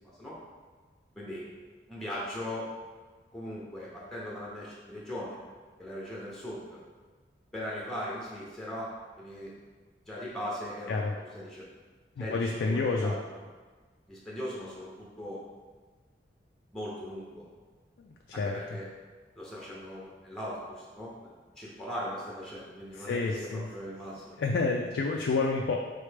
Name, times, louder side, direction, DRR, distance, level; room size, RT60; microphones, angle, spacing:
voice 1, 1.2-1.5 1.9-2.7 3.3-5.4 5.8-6.8 7.5-9.5 10.1-11.6 12.2-13.4 14.1-15.4 16.7-17.4 18.3-18.9 19.4-24.3, equal, ahead, -6 dB, 0.6 m, -39 dB
voice 2, 12.2-13.1 18.0-18.6 23.1-23.6 24.4-25.8, left 3 dB, 75° left, 0 dB, 0.3 m, -29 dB
4.1 x 3.2 x 3.3 m, 1.4 s
head